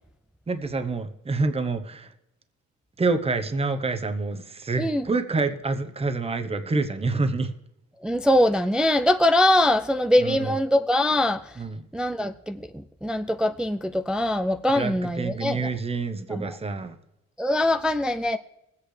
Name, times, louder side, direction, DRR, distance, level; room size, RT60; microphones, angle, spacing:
voice 1, 0.5-2.1 3.0-7.5 10.2-10.6 11.6-11.8 14.7-16.9, right 3 dB, 20° right, 0.9 m, -27 dB
voice 2, 8.0-11.6 11.9-15.7 16.3-16.6 17.4-18.4, left 1 dB, 5° right, 0.3 m, -23 dB
20.5 x 8.4 x 3.3 m
cardioid pair, 90°, 30 cm